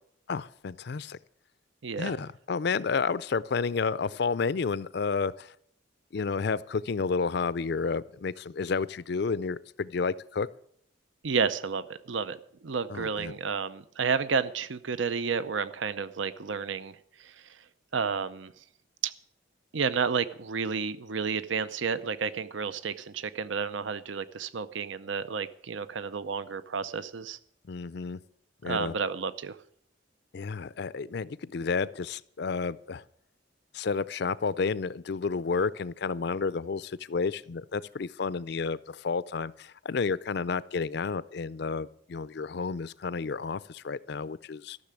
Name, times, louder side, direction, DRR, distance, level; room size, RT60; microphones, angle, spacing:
voice 1, 0.3-1.2 2.0-5.5 6.1-10.5 12.9-13.3 27.7-28.2 28.6-28.9 30.3-33.0 33.7-44.8, left 5 dB, 55° left, 18 dB, 0.4 m, -31 dB
voice 2, 1.8-2.1 11.2-12.4 12.6-17.3 17.9-18.5 19.0-19.1 19.7-27.4 28.7-29.6, right 5 dB, 70° right, 15 dB, 0.6 m, -31 dB
14.0 x 6.6 x 9.6 m, 0.68 s
head